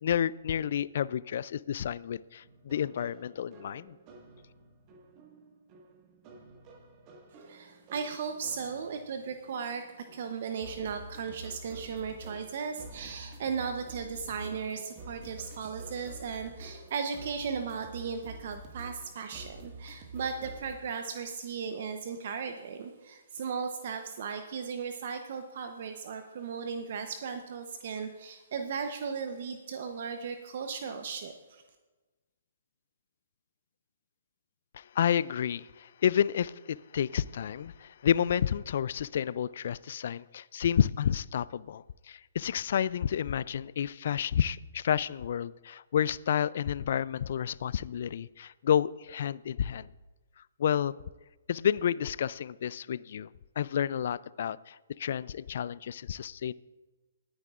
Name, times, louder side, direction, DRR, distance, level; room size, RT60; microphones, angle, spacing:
voice 1, 0.0-4.0 34.7-49.9 50.6-51.0 51.5-53.3 53.6-56.5, left 9 dB, 60° left, 20 dB, 0.3 m, -30 dB
sound 1, 2.4-20.7, right 2 dB, 35° right, 1.6 m, -49 dB
voice 2, 7.4-31.6, right 6 dB, 55° right, 7 dB, 0.8 m, -36 dB
20.0 x 9.7 x 2.5 m, 1.2 s
hypercardioid pair, 130°, 0 cm